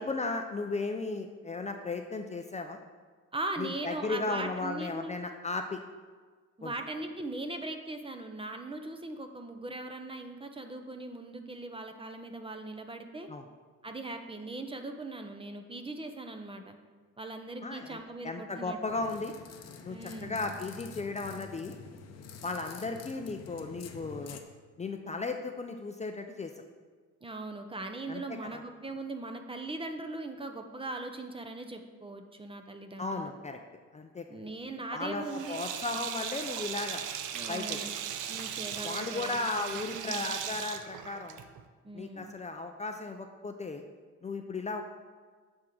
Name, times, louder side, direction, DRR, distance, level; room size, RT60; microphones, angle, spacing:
voice 1, 0.0-2.8 3.6-5.8 6.6-6.7 13.3-13.4 17.6-18.0 18.2-19.3 19.8-21.8 22.4-24.4 24.8-26.5 28.1-28.6 33.0-33.6 33.9-34.2 34.9-37.0 37.5-37.8 38.8-41.4 41.9-43.8 44.2-44.8, left 3 dB, 25° left, 5 dB, 0.5 m, -35 dB
voice 2, 3.3-5.2 6.6-13.3 13.8-16.8 17.2-19.0 19.9-20.5 27.2-33.3 34.3-35.7 37.3-37.9 38.3-40.3 41.8-42.3, right 2 dB, 20° right, 6 dB, 0.7 m, -40 dB
sound 1, 18.9-24.4, left 6 dB, 60° left, 0.8 m, -47 dB
Sink (filling or washing), 35.2-41.6, right 9 dB, 85° right, 0.6 m, -38 dB
8.6 x 3.7 x 6.3 m, 1.5 s
cardioid pair, 90°, 30 cm